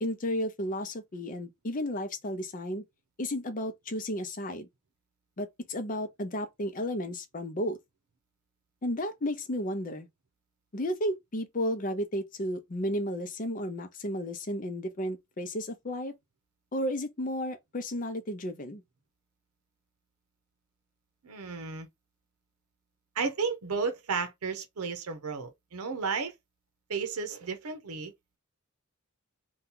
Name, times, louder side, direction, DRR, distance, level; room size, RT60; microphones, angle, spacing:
voice 1, 0.0-2.8 3.2-4.7 5.4-7.8 8.8-10.1 10.7-16.1 16.7-18.8, equal, 40° left, 0.6 m, -33 dB
voice 2, 21.2-21.9 23.2-26.3 26.9-28.1, right 5 dB, 90° right, 0.7 m, -33 dB
2.8 x 2.3 x 3.6 m
head